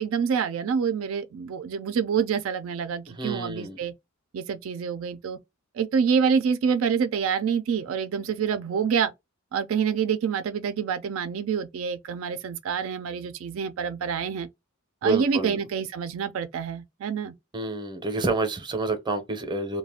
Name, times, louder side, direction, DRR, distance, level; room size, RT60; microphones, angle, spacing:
voice 1, 0.0-3.9 4.3-5.4 5.7-9.1 9.5-14.5 15.0-17.3, right 6 dB, 75° right, 0.4 m, -27 dB
voice 2, 3.2-3.8 15.0-15.6 17.5-19.8, right 3 dB, 20° right, 0.6 m, -28 dB
2.4 x 2.2 x 3.4 m
head